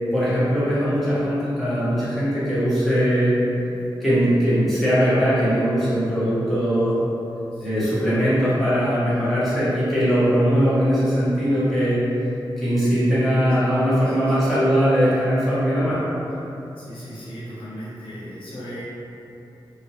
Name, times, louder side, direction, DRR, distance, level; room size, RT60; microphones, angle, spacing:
voice 1, 0.1-3.4 4.0-7.0 7.6-12.1 12.6-16.0, equal, ahead, -13 dB, 1.2 m, -20 dB
voice 2, 3.3-3.7 7.5-8.1 11.5-11.8 13.6-14.6 16.8-18.8, equal, 90° left, -9 dB, 0.9 m, -39 dB
2.8 x 2.7 x 2.9 m, 2.9 s
wide cardioid pair, 120°, 9 cm